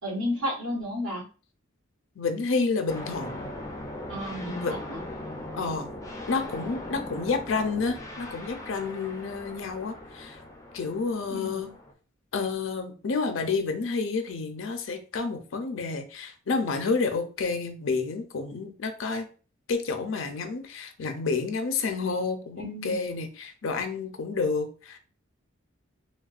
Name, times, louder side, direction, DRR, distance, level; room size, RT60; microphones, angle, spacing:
voice 1, 0.0-1.2 4.1-5.0 11.3-11.6 22.6-23.0, left 1 dB, 80° right, -4 dB, 1.5 m, -32 dB
voice 2, 2.2-3.5 4.5-4.7 5.5-5.9 6.3-10.4 10.7-11.7 12.3-19.3 19.7-25.0, left 4 dB, 75° left, 7 dB, 0.5 m, -29 dB
sound 1, 2.9-11.9, left 1 dB, 15° left, 0.4 m, -40 dB
3.4 x 2.2 x 2.3 m, 0.37 s
head